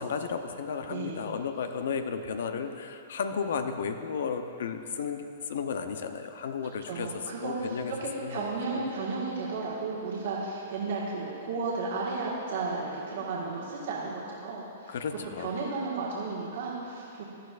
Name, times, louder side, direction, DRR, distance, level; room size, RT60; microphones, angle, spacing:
voice 1, 0.0-7.1 7.4-7.9 8.2-8.8 14.9-15.5, left 6 dB, 70° left, 7 dB, 0.7 m, -33 dB
voice 2, 0.9-1.3 6.9-14.9 15.4-17.2, right 3 dB, 65° right, -5 dB, 1.7 m, -33 dB
16.0 x 10.0 x 2.5 m, 2.6 s
hypercardioid pair, 125°, 0 cm